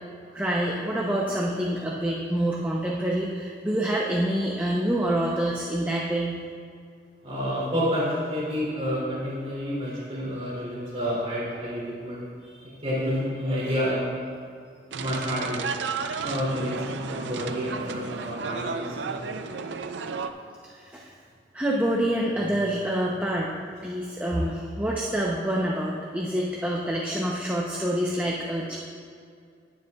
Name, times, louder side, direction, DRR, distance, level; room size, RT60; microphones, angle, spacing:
voice 1, 0.3-6.4 12.5-12.6 20.6-21.1 21.5-23.5 23.8-28.8, right 1 dB, 10° right, -4 dB, 0.7 m, -27 dB
voice 2, 7.2-12.2 12.6-14.2 14.9-15.6 16.2-19.6 24.3-24.4 25.2-25.3, equal, 35° right, -8 dB, 2.7 m, -29 dB
sound 1, 14.9-20.3, right 5 dB, 85° right, 0.5 m, -33 dB
19.0 x 7.9 x 2.3 m, 2.3 s
head